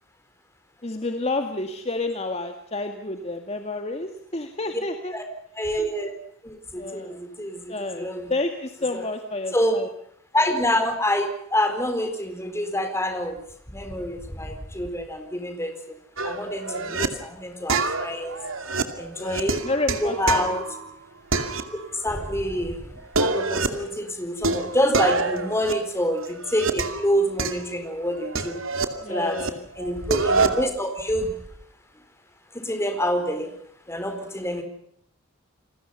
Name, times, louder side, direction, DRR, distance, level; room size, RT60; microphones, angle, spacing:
voice 1, 0.8-5.2 6.7-7.3 7.7-9.9 16.4-17.0 19.1-20.5 29.0-29.7, left 2 dB, 30° left, 6 dB, 2.0 m, -30 dB
voice 2, 5.6-6.1 6.4-8.3 8.9-9.0 9.5-9.8 10.3-13.4 13.7-16.0 16.2-18.4 19.0-19.7 20.0-20.6 22.0-22.8 23.2-28.6 29.1-29.4 29.8-31.3 32.5-33.5 33.9-34.6, equal, 15° left, 7 dB, 4.3 m, -26 dB
sound 1, 16.2-17.1 17.7-20.9 21.3-22.2 22.5-22.6 23.0-23.9 24.4-27.1 27.4-29.5 29.8-30.7, right 3 dB, 75° right, 2.5 m, -27 dB
29.5 x 21.0 x 5.6 m, 0.70 s
head